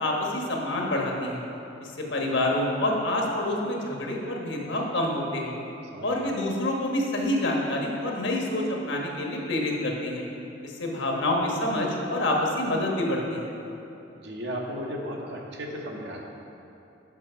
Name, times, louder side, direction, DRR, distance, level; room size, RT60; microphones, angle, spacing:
voice 1, 0.0-1.4 1.8-5.5 6.0-10.2 10.6-13.5, left 1 dB, 80° left, 0 dB, 1.2 m, -27 dB
voice 2, 5.9-6.4 14.2-16.2, equal, 65° right, 0 dB, 1.0 m, -35 dB
7.4 x 5.2 x 5.6 m, 2.9 s
head